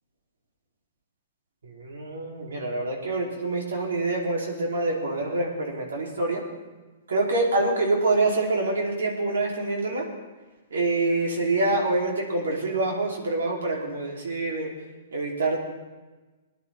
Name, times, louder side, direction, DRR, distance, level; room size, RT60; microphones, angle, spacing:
voice 1, 1.6-6.4 7.1-10.1 10.7-14.7 15.1-15.6, right 2 dB, 75° right, -1 dB, 3.0 m, -26 dB
20.0 x 10.5 x 3.4 m, 1.2 s
hypercardioid pair, 120°, 0 cm